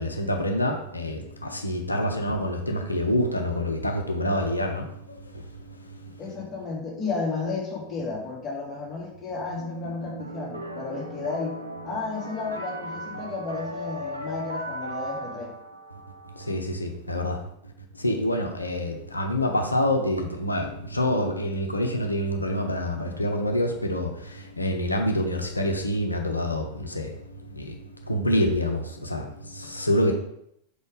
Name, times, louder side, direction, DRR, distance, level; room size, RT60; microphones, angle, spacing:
voice 1, 0.0-4.9 16.5-17.4 18.0-24.1 24.6-27.1 27.6-27.8 28.1-29.3 29.5-30.1, left 1 dB, 85° left, 3 dB, 0.8 m, -26 dB
voice 2, 6.2-15.5, left 4 dB, 25° left, -3 dB, 2.1 m, -33 dB
sound 1, 9.5-16.5, equal, 85° right, 0.9 m, -37 dB
5.0 x 4.3 x 4.9 m, 0.74 s
figure-of-eight pair, 90°, 0 cm